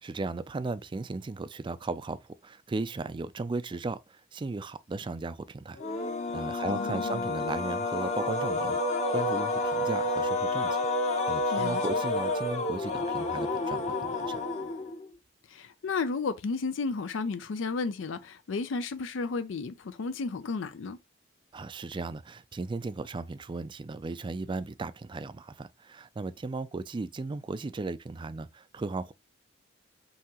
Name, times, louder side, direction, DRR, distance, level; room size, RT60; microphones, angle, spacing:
voice 1, 0.0-8.8 9.1-14.4 21.5-29.1, right 3 dB, 25° right, 0.3 m, -36 dB
sound 1, 5.7-15.1, left 2 dB, 40° left, 0.9 m, -30 dB
voice 2, 6.6-7.3 11.5-11.8 15.5-21.0, left 4 dB, 80° left, 0.5 m, -33 dB
5.5 x 2.8 x 2.9 m
head